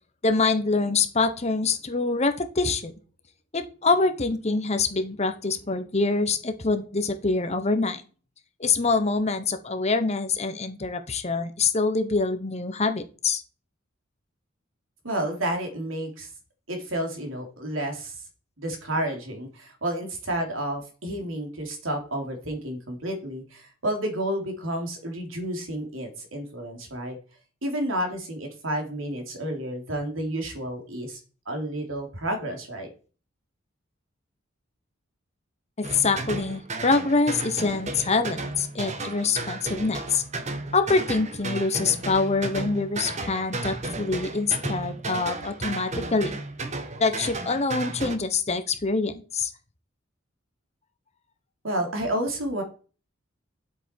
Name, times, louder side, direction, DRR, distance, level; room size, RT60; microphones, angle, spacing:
voice 1, 0.2-2.9 3.5-8.0 8.6-13.4 35.8-40.2 40.7-46.4 47.0-49.5, left 3 dB, 35° left, 8 dB, 1.1 m, -25 dB
voice 2, 15.0-16.3 16.7-18.2 18.6-27.2 27.6-31.2 31.4-32.9 51.6-52.6, right 1 dB, 85° right, 3 dB, 3.2 m, -30 dB
sound 1, 35.8-48.2, right 2 dB, 35° right, 1.2 m, -34 dB
10.5 x 7.9 x 4.5 m, 0.37 s
head